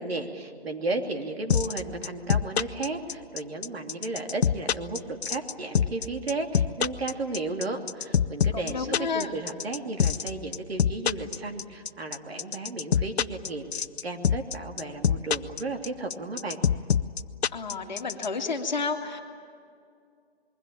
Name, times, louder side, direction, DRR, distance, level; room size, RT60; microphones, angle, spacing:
voice 1, 0.0-16.6, right 2 dB, 65° right, 4 dB, 3.0 m, -34 dB
sound 1, 1.5-18.3, left 7 dB, 75° left, 0.8 m, -24 dB
voice 2, 8.5-9.3 17.5-19.2, left 4 dB, 40° left, 4 dB, 2.1 m, -31 dB
27.0 x 22.0 x 8.9 m, 2.2 s
hypercardioid pair, 180°, 33 cm